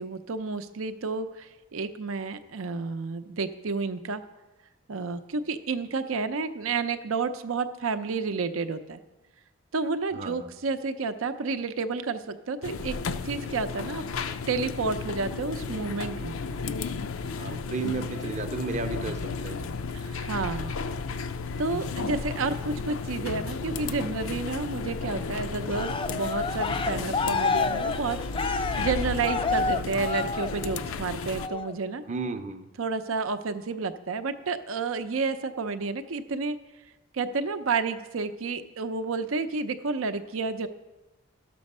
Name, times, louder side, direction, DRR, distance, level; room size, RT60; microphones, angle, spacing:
voice 1, 0.0-4.2 4.9-9.0 9.7-13.0 13.2-14.0 14.5-16.3 19.9-20.7 21.6-32.0 32.8-36.6 37.1-40.7, right 4 dB, 80° right, 10 dB, 0.6 m, -30 dB
sound 1, 12.6-31.5, left 4 dB, 85° left, 0.5 m, -33 dB
voice 2, 17.4-19.7 32.1-32.7, right 4 dB, 35° right, 8 dB, 0.6 m, -33 dB
Cheering, 25.7-30.9 31.4-31.7, left 4 dB, 25° left, 0.3 m, -29 dB
12.5 x 6.9 x 5.4 m, 1.1 s
head